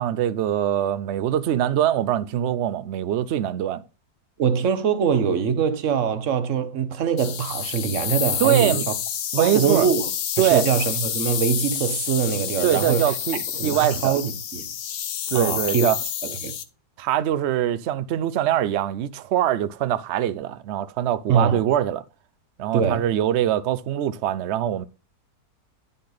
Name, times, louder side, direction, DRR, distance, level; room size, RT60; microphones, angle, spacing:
voice 1, 0.0-3.8 8.4-8.8 9.3-9.9 10.4-10.7 12.6-14.2 15.3-16.0 17.0-22.0 22.6-24.8, right 11 dB, 80° right, 0.6 m, -23 dB
voice 2, 4.4-8.9 9.4-10.0 10.4-13.1 13.6-14.7 15.3-15.9 16.2-16.5 21.3-21.6 22.7-23.1, right 7 dB, 55° right, 1.1 m, -23 dB
sound 1, 7.2-16.6, left 9 dB, 65° left, 1.2 m, -29 dB
10.5 x 5.5 x 3.9 m
omnidirectional pair, 1.8 m